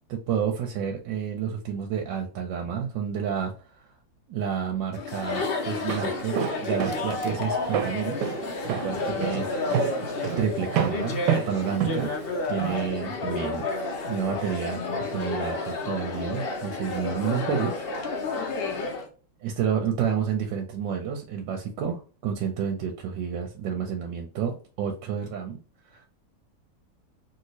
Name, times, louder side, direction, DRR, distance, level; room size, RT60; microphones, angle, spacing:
voice 1, 0.1-3.8 4.3-8.2 8.7-9.8 10.4-12.1 12.5-17.9 19.4-25.6 25.9-26.1, right 7 dB, 90° right, 1.3 m, -30 dB
Chatter, 4.9-19.1, left 3 dB, 70° left, 0.5 m, -31 dB
Walk footsteps, 5.7-12.8, right 9 dB, 70° right, 1.2 m, -30 dB
voice 2, 9.1-9.5 18.3-19.0, left 8 dB, 85° left, 1.6 m, -37 dB
3.2 x 2.8 x 2.8 m
omnidirectional pair, 2.0 m